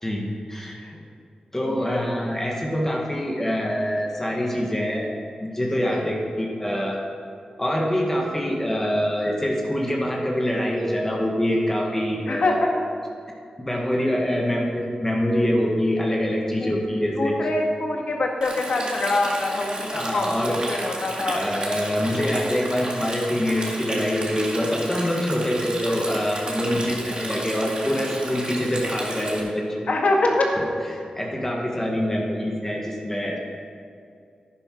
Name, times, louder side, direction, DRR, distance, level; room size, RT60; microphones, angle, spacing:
voice 1, 0.0-0.8 1.5-5.1 5.4-7.0 7.6-12.7 13.6-17.4 19.9-20.6 21.3-29.9 30.6-30.7 30.9-33.4, equal, 15° left, -1 dB, 1.7 m, -25 dB
voice 2, 1.6-2.0 5.9-6.5 12.3-12.8 16.6-16.7 17.2-21.4 26.5-27.0 29.9-30.5, left 2 dB, 70° left, 0 dB, 1.8 m, -25 dB
Stream, 18.4-29.4, right 1 dB, 40° right, 2.3 m, -33 dB
11.0 x 10.0 x 4.6 m, 2.4 s
wide cardioid pair, 85°, 2 cm